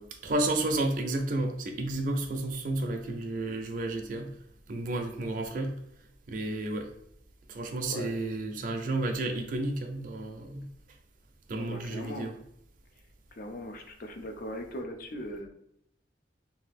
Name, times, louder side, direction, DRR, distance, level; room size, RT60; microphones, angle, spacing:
voice 1, 0.2-4.3 4.7-5.7 6.3-6.9 7.5-10.7 11.5-12.4, right 2 dB, 45° right, 4 dB, 0.4 m, -31 dB
voice 2, 11.6-12.3 13.3-15.5, equal, 50° left, 5 dB, 0.4 m, -39 dB
2.7 x 2.3 x 3.5 m, 0.74 s
head